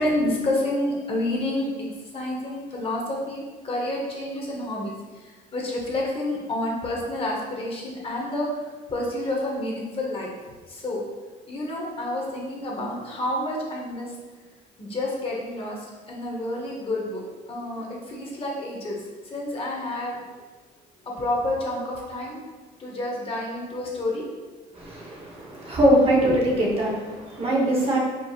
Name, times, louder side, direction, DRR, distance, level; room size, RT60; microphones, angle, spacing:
voice 1, 0.0-1.9 2.1-4.9 5.2-8.5 8.9-10.3 10.7-11.0 11.5-14.1 14.8-19.0 19.2-20.2 21.1-22.4 22.8-24.3, left 1 dB, 35° left, -3 dB, 1.0 m, -29 dB
voice 2, 25.6-26.9 27.4-28.0, right 1 dB, 35° right, -3 dB, 1.1 m, -20 dB
4.7 x 4.1 x 2.4 m, 1.3 s
cardioid pair, 110°, 17 cm